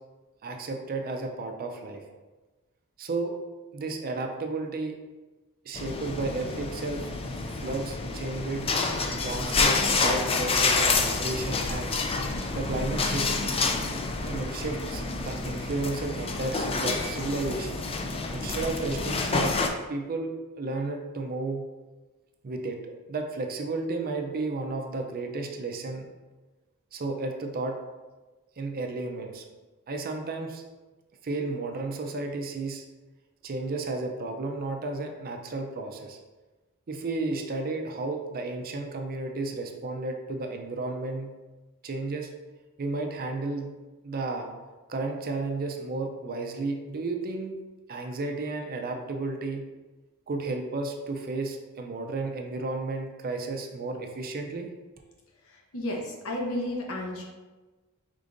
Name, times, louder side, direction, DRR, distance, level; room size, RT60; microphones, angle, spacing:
voice 1, 0.4-2.0 3.0-3.3 3.7-5.0 5.6-7.1 7.5-8.7 9.2-12.0 12.5-13.3 14.3-17.8 18.3-19.5 19.9-21.6 22.4-26.1 26.9-27.8 28.6-29.4 29.9-30.6 31.2-32.8 33.4-36.2 36.9-41.3 41.8-42.3 42.8-43.7 44.0-44.5 44.9-47.5 47.9-49.6 50.3-54.7, right 3 dB, 40° right, 4 dB, 0.5 m, -33 dB
sound 1, 5.7-19.7, left 3 dB, 25° left, 0.3 m, -28 dB
voice 2, 55.4-57.2, left 1 dB, 65° left, -1 dB, 0.9 m, -32 dB
5.0 x 3.6 x 2.6 m, 1.2 s
head